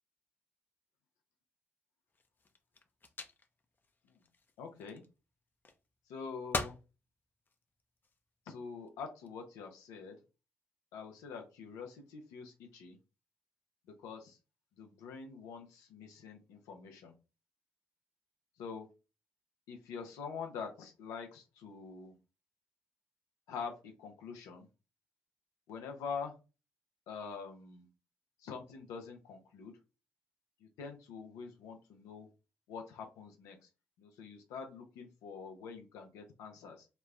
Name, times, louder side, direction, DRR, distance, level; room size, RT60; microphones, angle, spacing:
sound 1, 2.1-5.2 5.6-6.2 6.5-6.9 7.4-8.2 8.9-9.3, left 3 dB, 35° left, 0.5 m, -42 dB
voice 1, 4.6-5.0 6.1-6.8 8.5-10.2 10.9-13.0 14.0-14.4 14.8-17.1 18.6-18.9 19.7-22.2 23.5-24.7 25.7-26.3 27.1-27.9 28.4-29.7 30.6-32.3 32.7-33.7 34.0-36.9, left 5 dB, 85° left, 3 dB, 0.5 m, -45 dB
3.0 x 2.0 x 2.3 m, 0.30 s
supercardioid pair, 50°, 6 cm